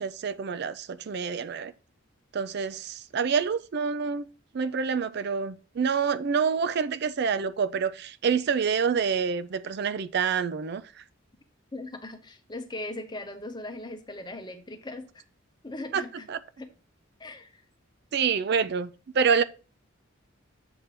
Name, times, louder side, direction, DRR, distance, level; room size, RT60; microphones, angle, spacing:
voice 1, 0.0-1.7 2.3-4.3 4.5-10.8 15.9-16.0 16.3-16.4 18.1-18.9 19.1-19.4, right 6 dB, 50° right, 0.4 m, -27 dB
voice 2, 11.7-15.2 15.6-16.3 16.6-16.7 17.2-17.6, left 2 dB, 20° left, 0.9 m, -39 dB
7.9 x 3.3 x 5.8 m
head